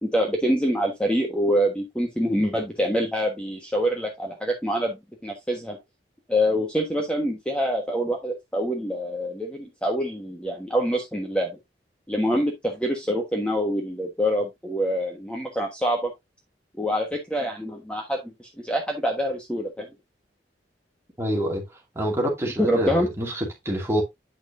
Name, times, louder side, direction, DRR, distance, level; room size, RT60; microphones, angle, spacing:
voice 1, 0.0-5.0 5.2-5.8 6.3-11.5 12.1-16.1 16.8-19.9 22.6-23.1, equal, 5° left, 1.3 m, -25 dB
voice 2, 21.2-21.7 21.9-24.0, equal, 15° right, 2.4 m, -26 dB
9.0 x 6.0 x 2.6 m
head